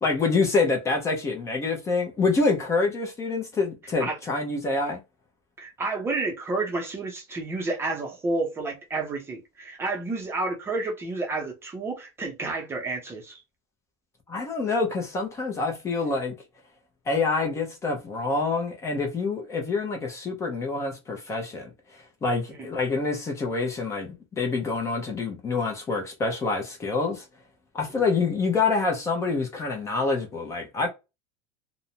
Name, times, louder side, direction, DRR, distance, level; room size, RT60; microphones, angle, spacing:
voice 1, 0.0-5.0 14.3-16.3 17.1-21.7 22.2-27.2 27.7-30.9, left 3 dB, 20° left, 0.6 m, -26 dB
voice 2, 5.6-13.4 27.9-28.0, right 3 dB, 15° right, 0.6 m, -30 dB
2.5 x 2.1 x 2.7 m
supercardioid pair, 155°, 15 cm